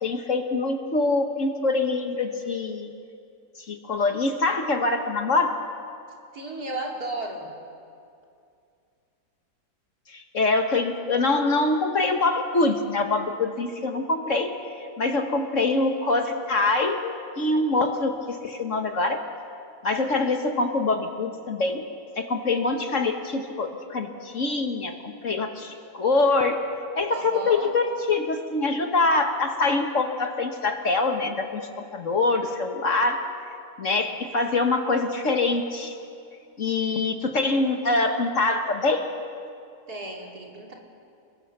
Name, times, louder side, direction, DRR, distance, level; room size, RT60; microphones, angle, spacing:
voice 1, 0.0-2.9 3.7-5.6 10.1-14.6 15.0-19.2 19.8-21.9 22.2-26.6 26.9-33.2 33.8-35.9 36.6-39.0, left 3 dB, 50° left, 5 dB, 1.5 m, -24 dB
voice 2, 6.3-7.5 27.1-27.7 39.9-40.7, right 2 dB, 60° right, -1 dB, 3.7 m, -34 dB
29.5 x 21.5 x 6.7 m, 2.5 s
omnidirectional pair, 1.9 m